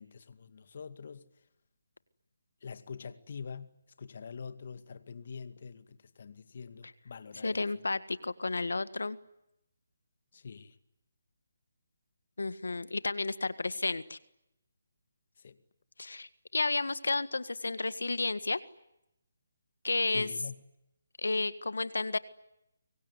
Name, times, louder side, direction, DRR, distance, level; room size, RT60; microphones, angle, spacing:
voice 1, 0.0-1.4 2.6-7.9 10.3-10.8 15.4-15.6 20.1-20.6, left 5 dB, 55° left, 2.2 m, -45 dB
voice 2, 7.4-9.2 12.4-14.2 16.0-18.6 19.8-20.3 21.2-22.2, left 3 dB, 85° left, 1.7 m, -32 dB
26.0 x 23.5 x 9.7 m
hypercardioid pair, 160°, 0 cm